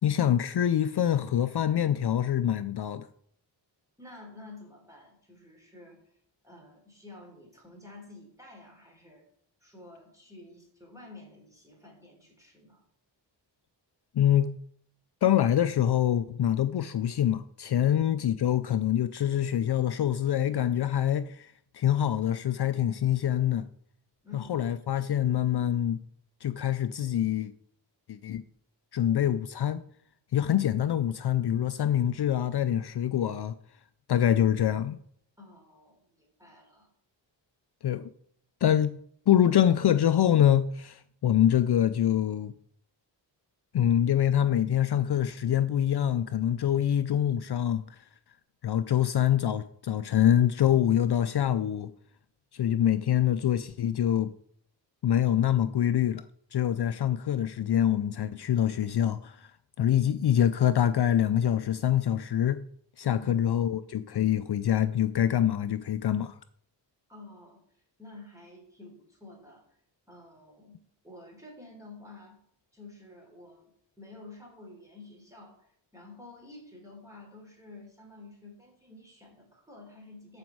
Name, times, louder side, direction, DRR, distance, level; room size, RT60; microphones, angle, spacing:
voice 1, 0.0-3.1 14.2-14.6 15.2-23.6 24.3-26.0 26.4-27.5 28.1-28.4 28.9-29.8 30.3-33.5 34.1-35.0 37.8-38.1 38.6-39.0 39.3-42.5 43.7-48.0 48.6-51.9 52.5-54.3 55.0-56.2 56.5-59.5 59.8-62.6 63.0-66.3, left 10 dB, 60° left, 0.5 m, -25 dB
voice 2, 4.0-6.0 6.4-9.2 9.6-12.8 17.8-17.9 24.2-24.6 35.4-36.9 63.0-63.3 67.1-67.6 68.0-69.6 70.1-72.4 72.7-75.7 75.9-80.4, left 2 dB, 5° right, 3.7 m, -50 dB
13.5 x 5.2 x 4.6 m
wide cardioid pair, 115°, 45 cm